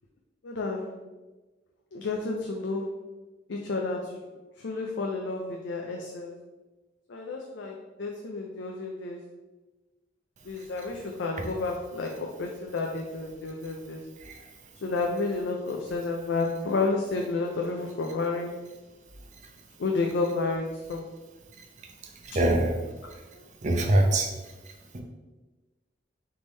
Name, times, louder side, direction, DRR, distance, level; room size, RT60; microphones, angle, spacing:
voice 1, 0.4-0.9 1.9-2.9 3.5-4.1 4.6-6.3 7.1-9.2 10.4-14.0 14.8-18.5 19.8-21.0 23.3-23.5, left 3 dB, 80° left, 1 dB, 0.4 m, -31 dB
voice 2, 22.2-22.7 23.1-23.2 23.6-24.3 24.9-25.0, right 1 dB, 40° right, 3 dB, 0.6 m, -24 dB
3.6 x 3.3 x 3.9 m, 1.2 s
head